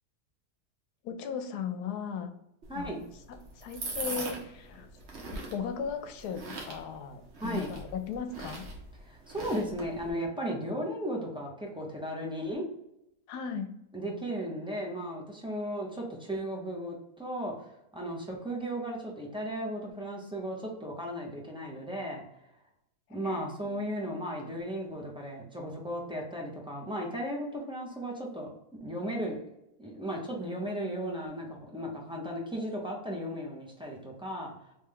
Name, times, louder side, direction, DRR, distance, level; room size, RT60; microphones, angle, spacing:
voice 1, 1.0-2.3 2.7-4.9 5.3-8.7 13.3-13.7 23.1-23.9, left 6 dB, 85° left, 8 dB, 1.1 m, -37 dB
sound 1, 2.6-10.1, right 2 dB, 50° right, 1.1 m, -42 dB
voice 2, 2.7-3.0 7.4-7.7 9.1-12.6 13.9-17.5 17.9-22.2 23.1-28.5 28.8-29.4 29.8-34.5, equal, 5° right, -2 dB, 0.4 m, -35 dB
3.3 x 3.1 x 3.6 m, 0.83 s
omnidirectional pair, 1.7 m